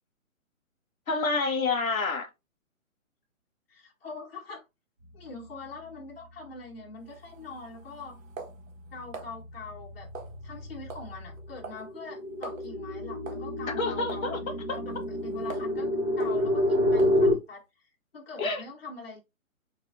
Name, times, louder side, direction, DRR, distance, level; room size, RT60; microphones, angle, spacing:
voice 1, 1.1-2.3 13.8-14.4 18.4-18.6, left 3 dB, 75° left, 1.2 m, -28 dB
voice 2, 3.7-4.6 5.1-8.2 8.9-10.1 10.4-14.3 15.1-15.9 16.2-17.6 18.1-19.2, left 3 dB, 45° left, 1.3 m, -43 dB
sound 1, 7.0-9.3 10.1-10.6 10.9-11.1 11.4-11.9 12.1-12.2 12.4-12.7 13.3-13.5 14.1-14.3 14.8-15.8 16.2-16.4 17.0-17.3, right 4 dB, 70° right, 1.2 m, -43 dB
sound 2, 7.7-8.0 8.4-17.3, left 1 dB, 20° right, 1.1 m, -29 dB
4.8 x 2.5 x 2.5 m
hypercardioid pair, 145°, 41 cm